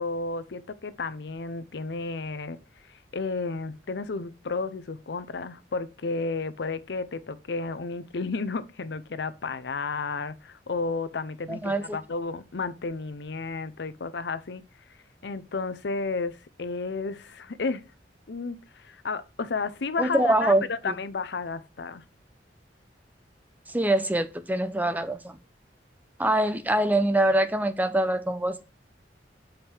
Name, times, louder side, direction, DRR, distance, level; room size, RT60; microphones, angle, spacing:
voice 1, 0.0-2.6 2.9-14.6 15.2-17.8 18.3-22.0, left 4 dB, 70° left, 0.6 m, -32 dB
voice 2, 11.5-12.0 20.0-20.9 23.7-25.4 26.2-28.6, right 1 dB, 10° right, 0.6 m, -24 dB
7.4 x 5.1 x 4.4 m
head